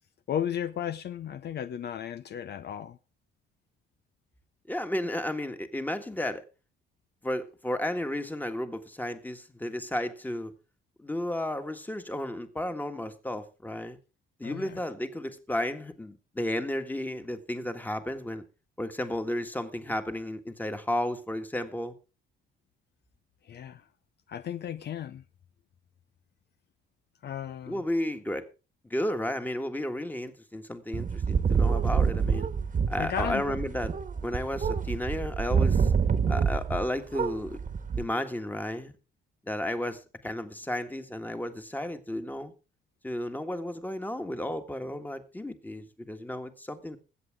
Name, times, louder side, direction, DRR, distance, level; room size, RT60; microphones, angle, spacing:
voice 1, 0.3-3.0 14.4-14.8 23.4-23.8 24.3-25.2 27.2-27.8 33.0-33.4, left 9 dB, 55° left, 0.6 m, -34 dB
voice 2, 4.7-6.4 7.2-10.5 11.0-14.0 14.4-18.4 18.8-21.9 27.7-28.4 28.8-32.5 32.9-33.9 34.2-35.9 36.3-37.6 38.0-38.9 39.5-42.5 43.0-47.0, left 1 dB, 10° left, 1.6 m, -33 dB
sound 1, 30.9-36.9 37.1-38.0, right 6 dB, 40° right, 1.4 m, -27 dB
21.5 x 8.0 x 3.6 m
cardioid pair, 90°, 20 cm